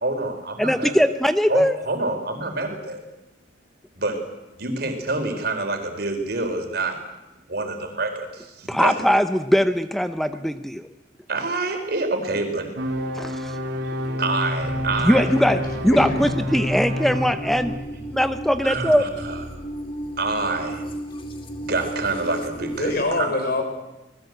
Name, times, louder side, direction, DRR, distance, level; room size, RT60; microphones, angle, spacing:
voice 1, 0.0-1.0 1.5-3.0 4.0-4.3 4.6-7.1 7.5-9.1 10.3-10.4 11.3-12.7 14.2-15.3 18.6-19.4 20.2-20.9 21.6-23.3, right 3 dB, 60° right, 5 dB, 4.5 m, -27 dB
voice 2, 0.6-1.8 8.7-10.8 13.2-13.6 15.0-15.6 15.8-17.7 18.1-19.0, equal, ahead, 10 dB, 0.8 m, -20 dB
sound 1, 12.8-17.8, left 1 dB, 75° right, 3.2 m, -28 dB
voice 3, 13.9-14.3 15.2-16.2 22.7-23.6, left 2 dB, 55° left, 4 dB, 5.5 m, -26 dB
sound 2, 14.6-23.0, right 1 dB, 30° left, 2.6 m, -35 dB
27.0 x 20.0 x 8.1 m, 1.0 s
head